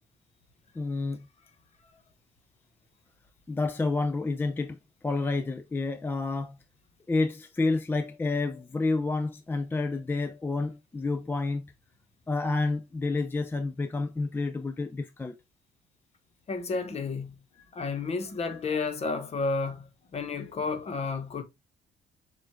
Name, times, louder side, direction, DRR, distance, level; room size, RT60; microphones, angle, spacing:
voice 1, 0.8-1.3 3.5-4.8 5.0-6.6 7.1-11.7 12.3-15.4, left 3 dB, 10° left, 0.4 m, -29 dB
voice 2, 16.5-17.4 17.7-21.4, left 4 dB, 40° left, 1.1 m, -31 dB
6.9 x 2.5 x 3.1 m
cardioid pair, 110°, 17 cm